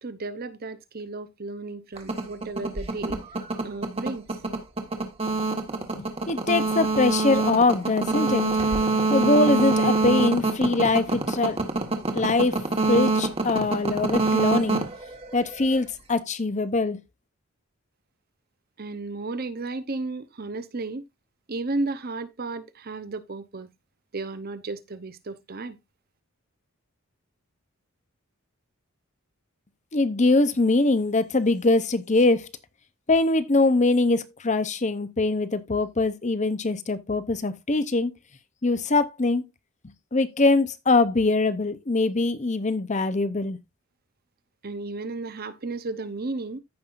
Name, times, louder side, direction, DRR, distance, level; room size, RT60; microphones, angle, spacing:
voice 1, 0.0-3.2 3.6-4.4 18.8-21.1 21.5-23.7 24.1-25.8 44.6-46.6, right 3 dB, 45° right, 0.8 m, -33 dB
sound 1, 2.0-15.8, right 3 dB, 25° right, 1.3 m, -25 dB
voice 2, 6.0-8.5 9.1-11.6 12.1-12.6 12.9-14.8 15.3-17.0 29.9-32.5 33.1-38.1 38.6-39.4 40.1-43.6, left 3 dB, 35° left, 0.7 m, -23 dB
14.5 x 5.5 x 2.5 m
head